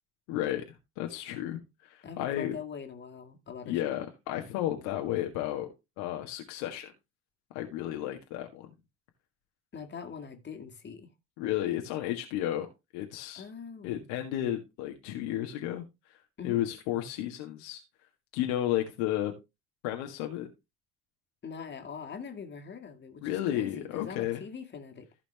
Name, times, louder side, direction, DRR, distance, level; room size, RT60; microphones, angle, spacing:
voice 1, 0.3-0.6 1.0-2.6 3.7-5.7 6.0-6.9 7.5-8.7 11.4-13.4 13.8-15.8 16.4-17.8 18.3-19.3 19.8-20.5 23.2-24.4, left 12 dB, 60° left, 1.6 m, -32 dB
voice 2, 2.0-4.0 9.7-11.1 13.3-14.1 16.4-16.6 21.4-23.2 23.5-25.1, left 6 dB, 30° left, 2.2 m, -43 dB
15.0 x 5.0 x 3.3 m
figure-of-eight pair, 65°, 34 cm